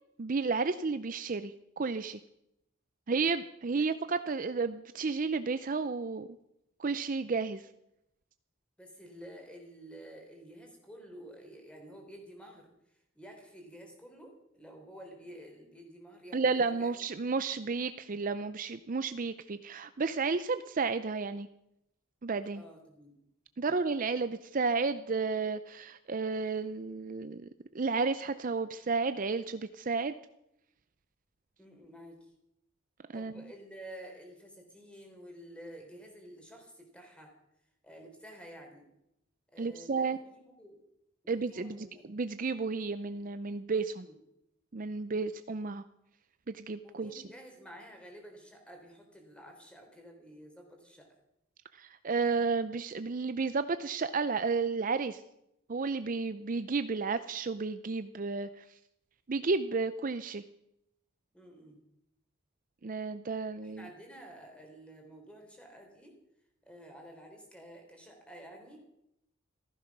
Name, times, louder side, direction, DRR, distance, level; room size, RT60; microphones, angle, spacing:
voice 1, 0.2-2.2 3.1-6.3 6.8-7.6 16.3-21.5 22.2-22.6 23.6-27.5 27.7-30.1 33.1-33.3 39.6-40.2 41.3-44.1 44.7-45.8 46.5-47.2 51.8-55.2 55.7-58.6 59.3-60.4 62.8-63.9, right 4 dB, 40° right, 11 dB, 0.5 m, -32 dB
voice 2, 8.8-16.9 22.5-23.2 23.6-23.8 31.6-32.3 33.1-37.3 37.8-38.9 39.5-40.8 41.2-42.0 43.9-44.2 46.8-51.1 61.3-61.8 63.6-66.2 66.7-68.8, equal, 5° left, 2 dB, 3.6 m, -51 dB
15.0 x 14.5 x 6.0 m, 0.82 s
head